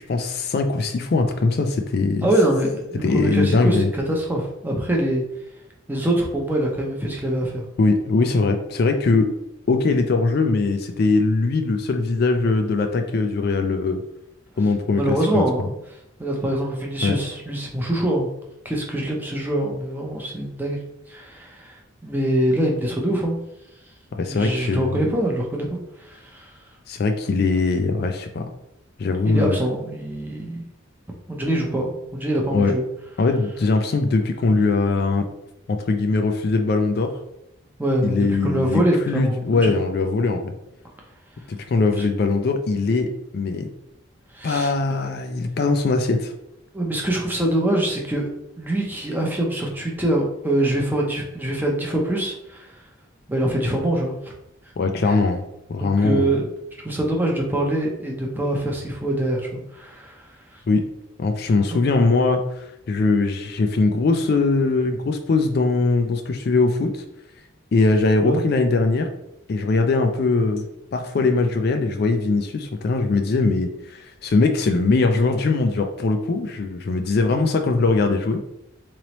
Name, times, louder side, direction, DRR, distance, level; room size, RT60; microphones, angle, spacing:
voice 1, 0.0-2.3 3.0-3.9 7.8-9.3 9.7-14.0 14.6-15.4 17.0-17.1 24.2-25.0 26.9-28.4 29.0-29.6 32.5-32.7 33.2-35.2 35.7-37.1 38.0-40.5 41.5-43.7 44.4-46.3 54.8-55.4 55.7-56.3 60.7-60.8 61.2-67.0 67.7-69.1 69.5-78.5, left 3 dB, 50° left, 5 dB, 0.3 m, -21 dB
voice 2, 2.2-5.2 5.9-7.6 15.0-15.7 16.2-18.3 18.6-20.8 21.1-23.4 24.2-26.5 29.2-30.6 31.3-32.9 37.8-39.7 42.0-42.1 44.3-44.7 45.0-45.1 46.7-48.3 48.6-52.8 53.3-54.3 55.8-56.5 56.8-60.6 68.2-68.4, right 1 dB, 10° right, -1 dB, 0.6 m, -24 dB
4.0 x 3.1 x 2.9 m, 0.84 s
head